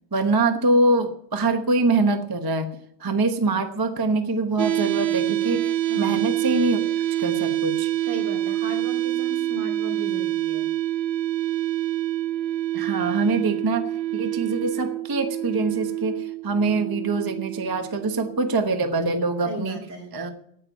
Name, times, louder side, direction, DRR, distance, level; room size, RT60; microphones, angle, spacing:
voice 1, 0.1-2.7 3.0-6.8 7.2-7.9 12.7-19.8 20.1-20.3, right 3 dB, 20° right, 6 dB, 0.5 m, -24 dB
sound 1, 4.6-18.5, right 14 dB, 80° right, 1.4 m, -26 dB
voice 2, 5.9-6.2 8.1-10.7 19.4-20.1, right 1 dB, 65° right, 1 dB, 3.5 m, -36 dB
9.8 x 8.7 x 9.0 m, 0.73 s
omnidirectional pair, 2.2 m